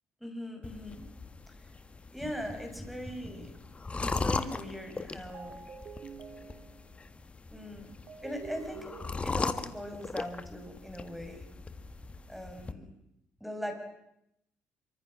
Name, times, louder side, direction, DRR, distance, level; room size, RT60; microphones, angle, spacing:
voice 1, 0.2-1.1 1.5-1.7 2.1-3.5 4.0-5.6 7.5-7.9 8.2-11.4 12.3-12.9 13.4-13.8, equal, ahead, 5 dB, 6.0 m, -40 dB
sound 1, 0.6-12.7, left 4 dB, 25° left, 1.7 m, -38 dB
sound 2, 5.3-7.0 8.1-9.8, right 6 dB, 55° right, 3.5 m, -48 dB
26.5 x 24.5 x 6.3 m, 0.82 s
cardioid pair, 105°, 5 cm